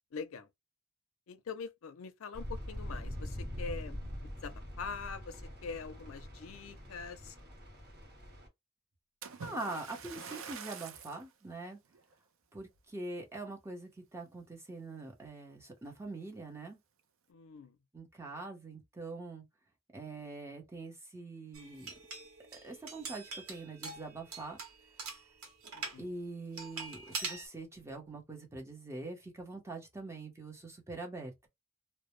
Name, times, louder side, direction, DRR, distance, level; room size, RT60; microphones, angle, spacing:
voice 1, 0.1-0.5 1.3-7.4 17.3-17.8 25.7-26.1, left 5 dB, 70° left, 0.5 m, -44 dB
sound 1, 2.3-8.5, equal, 50° right, 1.0 m, -43 dB
Splash splatter, 9.2-11.3 11.9-12.1 12.7-12.8, right 6 dB, 65° right, 0.4 m, -46 dB
voice 2, 9.4-11.8 12.5-16.8 17.9-19.4 19.9-21.9 22.6-24.6 26.0-31.5, right 2 dB, 15° right, 0.7 m, -44 dB
sound 2, 21.5-26.0 26.6-27.5, right 4 dB, 90° right, 0.9 m, -43 dB
2.1 x 2.0 x 2.9 m
head